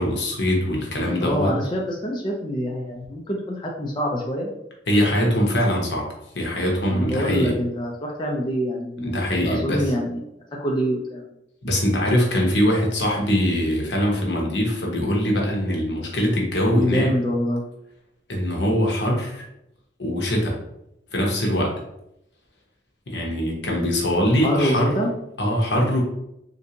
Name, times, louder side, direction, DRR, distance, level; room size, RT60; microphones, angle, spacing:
voice 1, 0.0-1.5 4.9-6.1 6.3-7.5 9.0-9.9 11.6-17.1 18.3-19.4 20.0-20.6 21.1-21.8 23.1-25.0 25.4-26.0, equal, 75° left, -1 dB, 0.9 m, -22 dB
voice 2, 1.2-4.5 6.9-9.2 9.4-10.2 10.6-11.3 16.7-17.7 24.4-25.1, equal, 25° left, -2 dB, 0.4 m, -25 dB
3.2 x 2.6 x 2.8 m, 0.81 s
head